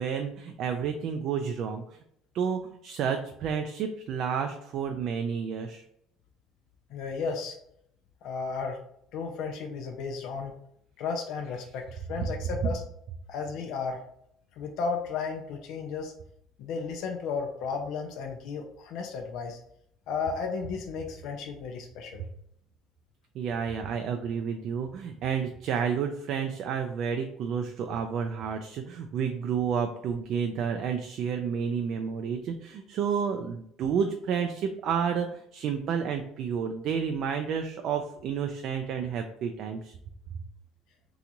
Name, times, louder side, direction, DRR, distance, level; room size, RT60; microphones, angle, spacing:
voice 1, 0.0-2.0 2.3-5.8 23.3-40.0, right 7 dB, 60° right, 5 dB, 0.3 m, -30 dB
voice 2, 6.9-7.6 8.2-8.8 9.1-10.5 11.0-12.8 13.3-14.0 14.6-16.1 16.6-19.6 20.1-22.2, left 5 dB, 70° left, 3 dB, 0.4 m, -34 dB
2.9 x 2.3 x 3.9 m, 0.72 s
cardioid pair, 110°, 0 cm